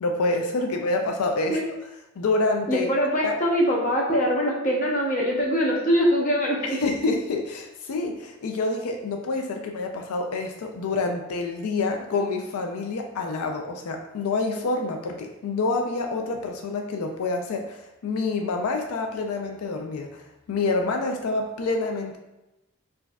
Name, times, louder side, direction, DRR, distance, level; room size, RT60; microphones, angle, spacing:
voice 1, 0.0-1.6 2.2-2.9 3.2-3.3 6.6-20.2 20.5-22.2, left 3 dB, 90° left, 3 dB, 0.4 m, -27 dB
voice 2, 2.7-6.8, equal, 35° left, -2 dB, 0.7 m, -23 dB
4.5 x 2.5 x 2.2 m, 0.96 s
head